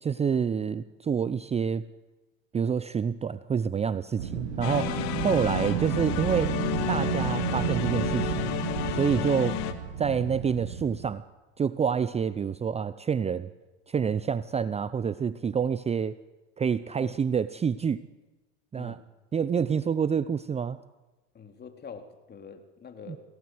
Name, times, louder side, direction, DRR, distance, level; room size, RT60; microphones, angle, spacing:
voice 1, 0.0-1.9 2.5-6.5 6.9-8.5 8.9-9.6 10.0-11.2 11.6-13.5 13.9-16.2 16.6-18.0 18.7-19.0 19.3-20.8 23.1-23.2, right 7 dB, 20° right, 16 dB, 0.7 m, -27 dB
Wind, 4.2-11.1, right 8 dB, 85° right, 2.6 m, -32 dB
sound 1, 4.6-9.7, left 12 dB, 55° left, 2.6 m, -31 dB
voice 2, 21.3-23.2, left 6 dB, 30° left, 6 dB, 3.6 m, -45 dB
27.5 x 18.0 x 8.1 m, 1.2 s
hypercardioid pair, 90°, 33 cm